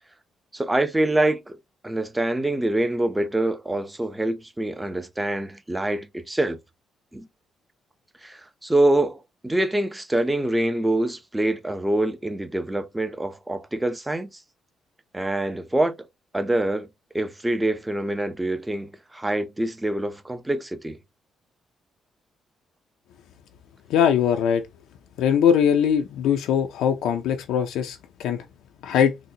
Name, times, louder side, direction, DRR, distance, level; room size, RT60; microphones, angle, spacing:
voice 1, 0.5-1.6 1.8-6.6 7.1-7.3 8.2-14.3 15.1-16.1 16.3-16.9 17.1-21.0, right 1 dB, 10° right, 0.5 m, -25 dB
voice 2, 23.9-24.6 25.2-28.4 28.8-29.1, left 8 dB, 85° left, 0.4 m, -21 dB
3.9 x 2.0 x 2.7 m
cardioid pair, 90°, 0 cm